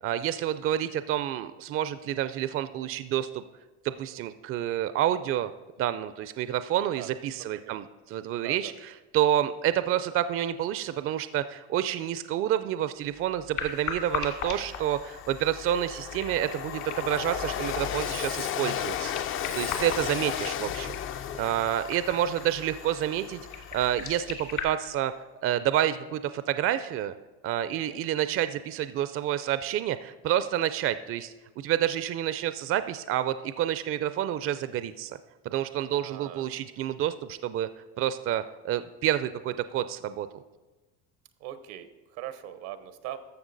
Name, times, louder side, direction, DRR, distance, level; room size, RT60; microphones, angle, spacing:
voice 1, 0.0-3.4 3.8-5.5 5.8-19.2 19.5-21.0 21.4-25.1 25.4-27.1 27.4-35.2 35.4-37.7 38.0-40.3, right 11 dB, 45° right, 13 dB, 0.4 m, -29 dB
voice 2, 6.9-7.8 8.4-8.7 20.0-20.6 27.7-28.0 35.9-36.5 41.4-43.2, right 12 dB, 85° right, 11 dB, 0.9 m, -42 dB
sound 1, 13.6-24.6, left 6 dB, 60° left, 1.8 m, -40 dB
Train, 13.6-13.7 14.0-24.5, left 9 dB, 40° left, 0.4 m, -35 dB
12.5 x 6.9 x 3.9 m, 1.2 s
supercardioid pair, 100°, 32 cm